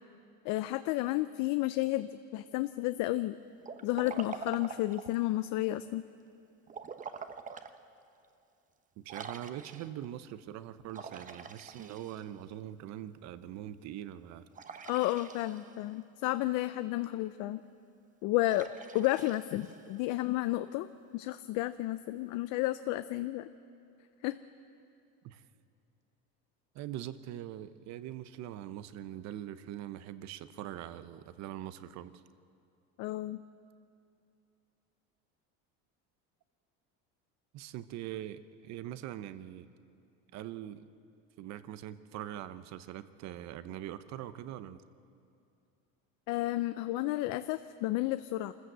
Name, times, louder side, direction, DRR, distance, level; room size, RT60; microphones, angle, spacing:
voice 1, 0.4-3.4 3.8-6.0 14.9-17.6 18.2-18.7 18.9-23.5 24.2-24.4 33.0-33.4 46.3-48.5, left 16 dB, 65° left, 12 dB, 0.6 m, -32 dB
Liquid, 3.6-5.2 6.7-7.8 8.2-8.3 9.1-10.1 10.9-12.5 14.5-15.9 18.4-20.1, right 6 dB, 25° right, 1.0 m, -45 dB
voice 2, 9.0-14.5 25.2-25.4 26.7-32.2 37.5-39.7 40.3-40.9 41.4-44.8, right 12 dB, 55° right, 13 dB, 0.9 m, -42 dB
25.0 x 14.5 x 7.9 m, 2.6 s
cardioid pair, 135°, 33 cm